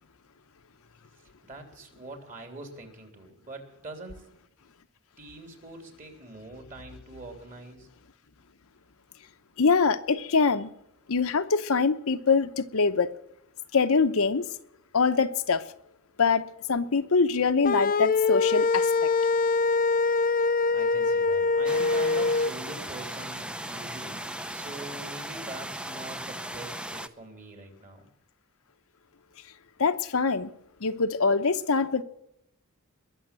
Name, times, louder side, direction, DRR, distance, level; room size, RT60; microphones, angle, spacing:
voice 1, 1.4-4.2 5.2-7.9 20.7-24.2 24.5-28.0, right 2 dB, 40° right, 3.5 m, -44 dB
voice 2, 9.6-10.7 11.1-13.1 13.7-14.5 14.9-15.6 16.2-18.9 29.8-30.5 30.8-32.0, left 4 dB, 70° left, 0.9 m, -24 dB
sound 1, 17.6-22.5, left 4 dB, 40° left, 0.5 m, -24 dB
sound 2, 21.6-27.1, right 1 dB, 5° right, 0.6 m, -37 dB
21.5 x 7.2 x 9.2 m
head